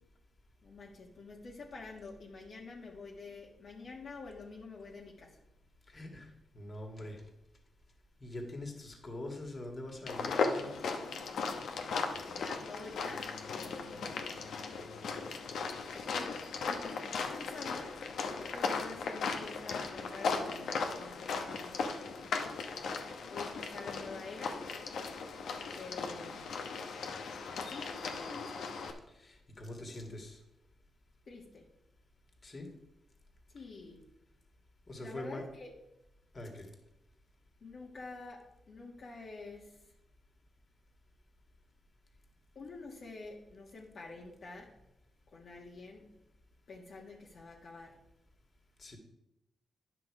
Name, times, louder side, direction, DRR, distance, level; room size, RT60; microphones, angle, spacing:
voice 1, 0.6-5.4 10.8-11.0 12.3-14.3 15.9-16.4 16.6-21.9 22.2-22.3 23.3-24.6 25.7-26.5 27.5-28.8 31.3-31.7 33.5-34.0 35.0-35.7 37.6-39.9 42.5-44.7 45.3-46.1 46.7-48.0, left 3 dB, 60° left, -3 dB, 1.5 m, -48 dB
voice 2, 5.9-6.3 6.5-7.3 8.2-10.7 29.1-30.4 32.4-32.7 34.9-35.5 36.3-36.7 48.8-49.0, left 1 dB, 40° left, 2 dB, 2.0 m, -43 dB
sound 1, 10.1-28.9, left 4 dB, 80° left, 1.0 m, -37 dB
10.0 x 5.9 x 4.8 m, 0.88 s
cardioid pair, 80°, 0 cm